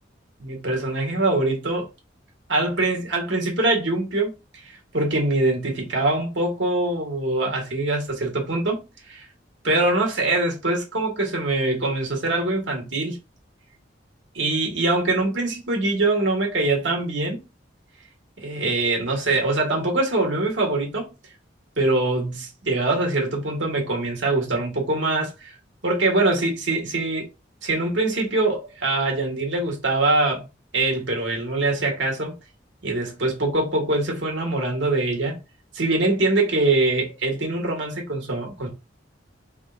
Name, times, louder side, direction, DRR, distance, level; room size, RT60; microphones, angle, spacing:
voice 1, 0.4-1.9 2.5-4.3 4.6-9.3 9.6-13.2 14.3-17.4 18.4-21.1 21.8-25.6 25.8-27.3 27.6-30.4 30.7-32.3 32.8-35.4 35.7-38.7, right 2 dB, 80° right, 1.8 m, -23 dB
4.9 x 3.7 x 2.6 m
head